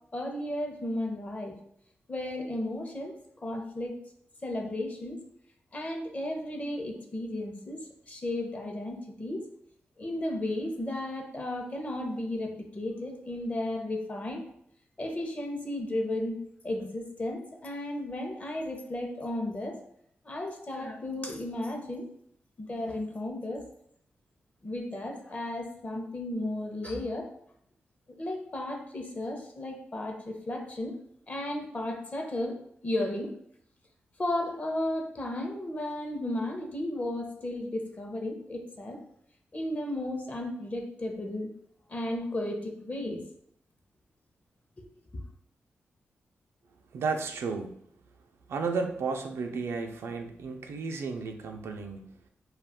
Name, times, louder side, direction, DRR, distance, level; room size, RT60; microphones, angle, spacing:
voice 1, 0.1-1.6 2.1-4.0 4.4-5.2 5.7-9.5 10.0-14.5 15.0-19.8 20.2-22.1 22.6-23.6 24.6-27.3 28.1-31.0 31.3-33.4 34.2-39.0 39.5-41.5 41.9-43.2 45.1-45.2, left 1 dB, 35° left, 3 dB, 0.6 m, -34 dB
voice 2, 46.9-47.7 48.5-52.1, right 4 dB, 80° right, 4 dB, 0.4 m, -33 dB
2.3 x 2.3 x 3.4 m, 0.69 s
cardioid pair, 65°, 4 cm